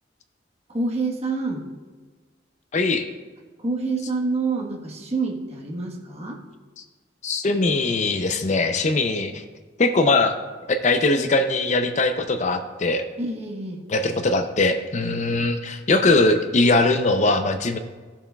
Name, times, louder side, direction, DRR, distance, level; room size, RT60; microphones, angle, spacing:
voice 1, 0.7-1.7 3.6-6.4 13.2-13.8, right 3 dB, 35° right, -1 dB, 1.3 m, -27 dB
voice 2, 2.7-3.1 7.2-9.4 9.8-10.4 10.7-13.0 13.9-17.8, left 2 dB, 40° left, 8 dB, 0.5 m, -21 dB
14.5 x 7.1 x 2.3 m, 1.4 s
head